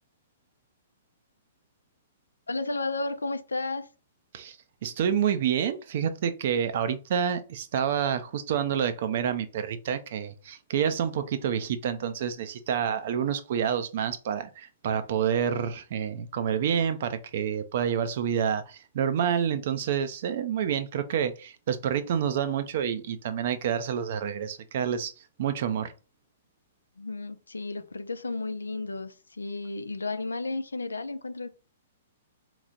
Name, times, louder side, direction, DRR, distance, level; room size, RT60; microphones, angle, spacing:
voice 1, 2.5-3.9 27.0-31.5, left 3 dB, 80° left, 0.5 m, -33 dB
voice 2, 4.8-25.1 25.4-25.9, right 8 dB, 50° right, 0.6 m, -28 dB
4.0 x 3.1 x 3.8 m
figure-of-eight pair, 115°, 0 cm